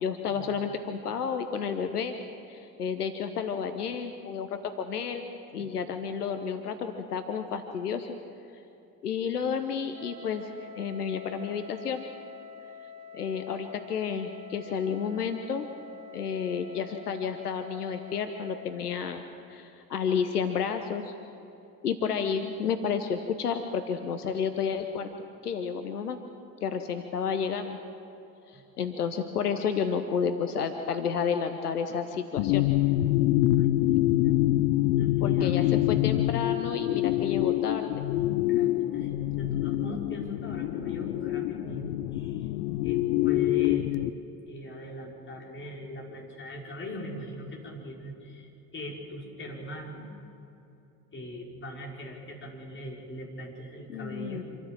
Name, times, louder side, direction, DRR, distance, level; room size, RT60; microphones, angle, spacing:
voice 1, 0.0-2.2 2.5-5.3 5.5-8.1 9.0-10.5 10.7-12.0 13.1-15.7 16.1-19.2 19.5-21.1 21.8-25.1 25.4-26.2 26.6-27.8 28.5-32.7 35.2-37.9 53.9-54.4, left 6 dB, 75° left, 8 dB, 1.0 m, -31 dB
Wind instrument woodwind instrument, 9.9-18.8, left 5 dB, 55° right, 4.3 m, -47 dB
sound 1, 32.4-44.1, left 15 dB, 55° left, 0.7 m, -26 dB
voice 2, 33.6-34.5 34.9-36.0 38.5-42.5 42.8-44.0 44.5-50.0 51.1-54.4, left 1 dB, 25° left, -2 dB, 5.1 m, -41 dB
26.5 x 14.0 x 7.4 m, 2.7 s
figure-of-eight pair, 60°, 46 cm